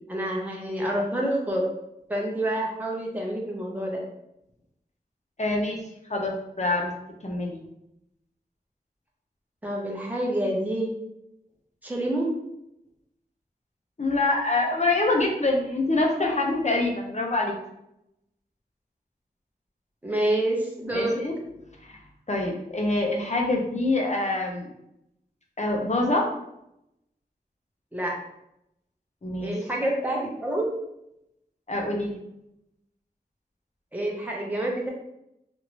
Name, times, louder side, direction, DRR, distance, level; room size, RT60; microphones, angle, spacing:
voice 1, 0.1-1.6 2.1-4.0 9.6-10.9 11.8-12.3 20.0-21.2 27.9-28.1 29.4-30.7 33.9-34.9, right 1 dB, 10° right, -2 dB, 0.8 m, -27 dB
voice 2, 5.4-5.8 6.1-6.9 7.2-7.6 14.0-17.6 20.9-21.3 21.8-22.0 22.3-24.7 25.6-26.3 29.2-29.5 31.7-32.2, left 2 dB, 45° left, 0 dB, 0.8 m, -25 dB
2.9 x 2.6 x 3.0 m, 0.82 s
wide cardioid pair, 40°, 17 cm